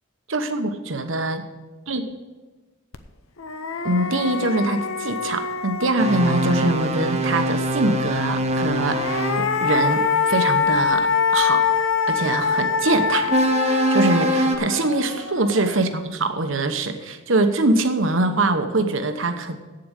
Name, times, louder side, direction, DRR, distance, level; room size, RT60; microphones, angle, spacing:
voice 1, 0.3-1.4 1.9-2.1 3.8-11.7 12.1-13.3 13.7-19.6, right 2 dB, 70° right, 8 dB, 1.0 m, -23 dB
sound 1, 2.9-3.0 3.4-7.1 8.7-16.0, left 6 dB, 90° left, 0.8 m, -24 dB
sound 2, 6.0-9.4 13.3-14.6, right 1 dB, 30° right, 1.0 m, -23 dB
8.6 x 7.7 x 8.0 m, 1.2 s
head